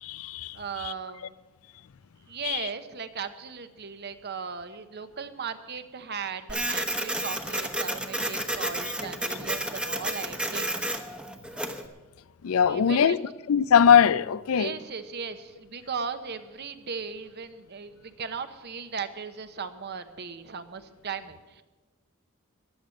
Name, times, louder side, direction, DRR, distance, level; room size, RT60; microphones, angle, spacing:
voice 1, 0.0-0.9 2.4-2.7 12.4-14.7, left 7 dB, 85° left, 0.4 m, -22 dB
voice 2, 0.5-1.3 2.3-10.7 12.7-13.3 14.5-21.6, right 6 dB, 50° right, 0.9 m, -37 dB
Printer, 6.5-11.9, right 1 dB, 5° right, 0.9 m, -31 dB
15.5 x 11.0 x 6.4 m
head